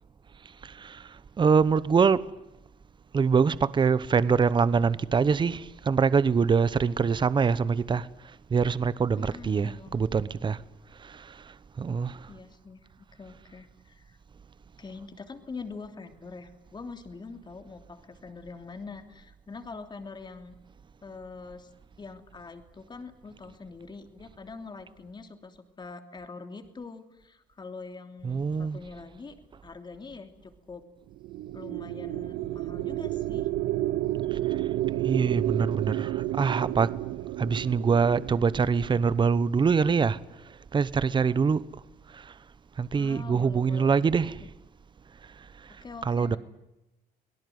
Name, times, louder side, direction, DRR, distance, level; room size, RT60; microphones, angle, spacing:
voice 1, 0.6-2.3 3.1-10.6 11.0-12.3 28.2-28.8 34.3-34.6 35.0-36.9 37.4-40.2 40.4-41.6 42.1-42.3 42.8-44.5 45.4-46.4, right 5 dB, 30° right, 0.9 m, -25 dB
voice 2, 9.2-10.0 12.3-14.2 14.8-20.6 21.0-21.7 22.0-29.4 29.6-30.9 31.5-33.5 43.0-44.2 45.8-46.4, left 4 dB, 25° left, 3.0 m, -44 dB
sound 1, 31.1-39.6, right 15 dB, 85° right, 0.9 m, -31 dB
25.0 x 18.5 x 9.4 m
cardioid pair, 110°, 17 cm